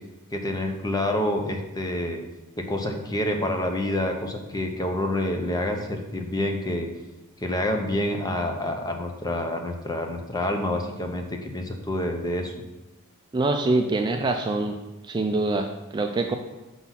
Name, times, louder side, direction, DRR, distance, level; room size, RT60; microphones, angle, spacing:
voice 1, 0.3-2.2 2.6-6.9 7.4-12.5, left 1 dB, 15° left, 4 dB, 0.7 m, -27 dB
voice 2, 13.3-14.7 15.0-16.4, right 2 dB, 20° right, 4 dB, 0.3 m, -24 dB
5.8 x 4.0 x 5.7 m, 1.0 s
head